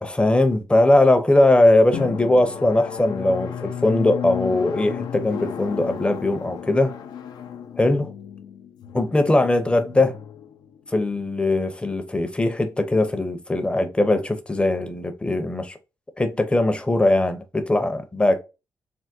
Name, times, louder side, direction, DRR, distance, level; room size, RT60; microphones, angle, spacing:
voice 1, 0.0-6.9 7.8-8.1 8.9-10.1 10.9-15.8 16.2-18.4, left 2 dB, 15° left, 0.6 m, -20 dB
Drum, 1.9-11.2, left 8 dB, 75° left, 0.4 m, -34 dB
3.4 x 2.1 x 2.6 m
cardioid pair, 75°, 7 cm